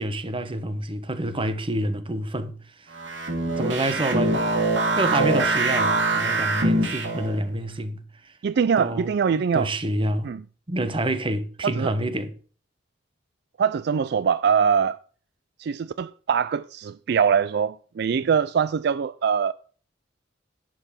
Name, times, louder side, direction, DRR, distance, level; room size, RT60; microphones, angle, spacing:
voice 1, 0.0-2.9 3.6-4.5 5.0-8.3 8.8-10.3 10.7-12.3 18.1-18.3, right 1 dB, 30° right, 1.1 m, -28 dB
sound 1, 2.9-7.4, right 2 dB, 85° right, 2.8 m, -23 dB
voice 2, 8.4-9.7 10.2-10.4 11.6-11.9 13.6-15.0 15.6-19.5, right 7 dB, 60° right, 0.4 m, -23 dB
11.0 x 7.6 x 4.3 m
head